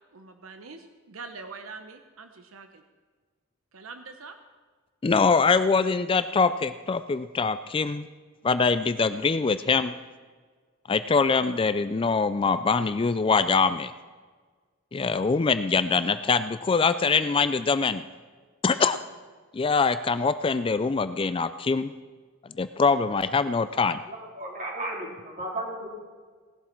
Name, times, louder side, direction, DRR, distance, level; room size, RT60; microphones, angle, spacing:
voice 1, 0.1-2.8 3.7-4.4, right 4 dB, 85° right, 7 dB, 0.9 m, -43 dB
voice 2, 5.0-8.1 8.4-10.0 10.9-13.9 14.9-18.0 18.6-19.0 19.5-21.9 22.6-24.0, left 4 dB, 25° left, 12 dB, 0.4 m, -23 dB
voice 3, 24.1-25.9, right 1 dB, 40° right, -3 dB, 4.1 m, -34 dB
18.5 x 11.5 x 4.5 m, 1.5 s
head